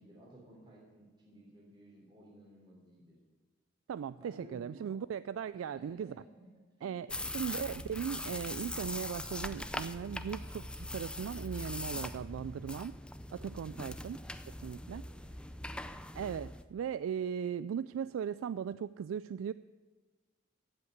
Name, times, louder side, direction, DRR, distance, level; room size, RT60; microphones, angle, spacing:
voice 1, 0.0-3.2 4.1-5.0 5.3-7.3 13.7-14.0 14.9-15.4 15.7-15.9, right 1 dB, 20° right, -4 dB, 3.2 m, -57 dB
voice 2, 3.9-6.2 6.8-13.0 13.3-14.2 14.6-15.0 16.2-19.5, right 8 dB, 90° right, 16 dB, 0.3 m, -38 dB
sound 1, 7.1-16.6, left 1 dB, 5° left, 0.4 m, -41 dB
15.5 x 5.8 x 9.3 m, 1.4 s
head